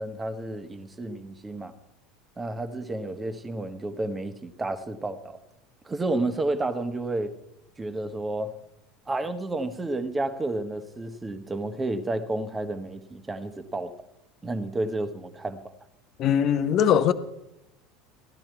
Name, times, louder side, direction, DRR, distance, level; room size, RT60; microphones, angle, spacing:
voice 1, 0.0-1.7 2.4-5.4 5.8-7.3 7.8-8.5 9.1-13.9 14.4-15.7, right 2 dB, 20° right, 1.2 m, -31 dB
voice 2, 16.2-17.1, left 9 dB, 45° left, 0.9 m, -21 dB
15.5 x 11.5 x 4.6 m
hypercardioid pair, 75°, 0 cm